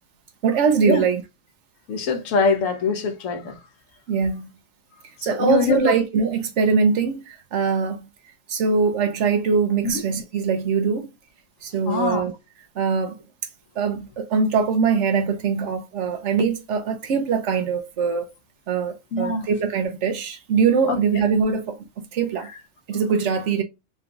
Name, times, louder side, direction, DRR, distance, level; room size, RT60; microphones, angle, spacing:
voice 1, 0.4-1.2 4.1-4.5 5.2-8.0 8.5-11.1 11.6-12.3 12.8-13.2 13.8-18.3 18.7-22.5 22.9-23.6, right 5 dB, 70° right, 0.9 m, -22 dB
voice 2, 1.9-3.6 5.3-5.9 11.9-12.2 19.1-19.5 20.9-21.2, left 4 dB, 85° left, 1.2 m, -23 dB
3.8 x 2.3 x 3.7 m
omnidirectional pair, 1.3 m